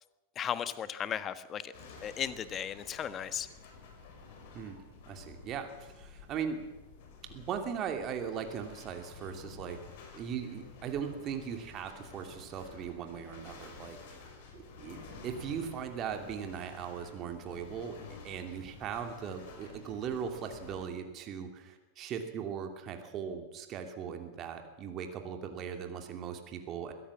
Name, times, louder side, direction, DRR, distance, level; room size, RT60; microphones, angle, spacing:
voice 1, 0.3-1.7 2.0-3.5, left 9 dB, 25° left, 14 dB, 1.3 m, -36 dB
sound 1, 1.7-20.8, left 4 dB, 50° left, 5.7 m, -51 dB
voice 2, 5.1-6.6 7.3-9.8 10.1-14.0 14.5-26.9, right 7 dB, 35° right, 5 dB, 2.7 m, -39 dB
22.5 x 17.0 x 7.4 m, 1.1 s
figure-of-eight pair, 90°, 0 cm